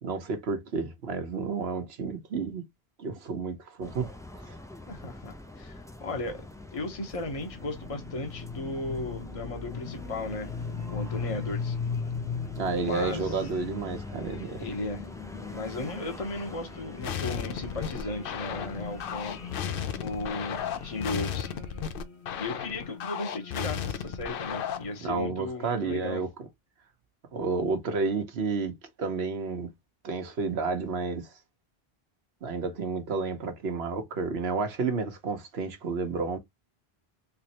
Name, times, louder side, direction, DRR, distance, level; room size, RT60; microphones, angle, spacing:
voice 1, 0.0-2.7 3.0-4.1 12.6-14.6 25.0-26.3 27.3-29.7 30.0-31.3 32.4-36.4, right 4 dB, 75° right, 1.2 m, -31 dB
sound 1, 3.8-21.1, left 1 dB, 5° left, 0.3 m, -44 dB
voice 2, 4.9-6.4 6.7-10.5 10.9-11.7 12.8-13.4 14.6-15.0 15.5-19.4 20.0-21.5 22.4-26.2, left 2 dB, 35° left, 1.0 m, -36 dB
sound 2, 7.0-25.0, left 6 dB, 80° left, 1.3 m, -40 dB
sound 3, 17.0-25.0, left 8 dB, 65° left, 0.7 m, -34 dB
3.5 x 3.1 x 2.8 m
omnidirectional pair, 1.1 m